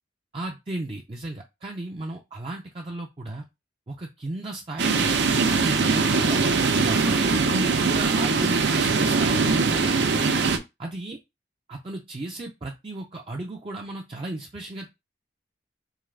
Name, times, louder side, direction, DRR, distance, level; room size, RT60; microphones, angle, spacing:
voice 1, 0.3-3.4 3.9-6.4 6.7-10.1 10.8-11.2 11.7-14.9, right 2 dB, 30° right, 0 dB, 0.5 m, -34 dB
sound 1, 4.8-10.6, right 4 dB, 80° right, 0.6 m, -22 dB
3.7 x 3.5 x 3.2 m, 0.23 s
head